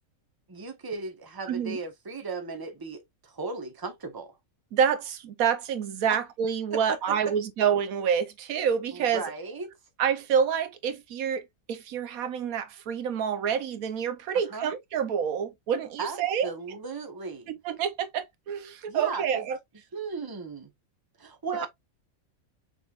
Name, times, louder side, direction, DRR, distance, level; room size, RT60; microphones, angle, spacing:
voice 1, 0.5-4.4 6.7-7.0 8.9-9.7 14.5-14.7 16.0-17.5 18.9-19.5 19.9-20.7 21.2-21.7, right 4 dB, 20° right, 0.9 m, -36 dB
voice 2, 1.5-1.8 4.7-9.2 10.0-16.5 17.5-19.6 21.6-21.7, right 7 dB, 90° right, 1.2 m, -28 dB
6.3 x 3.2 x 2.4 m
omnidirectional pair, 1.4 m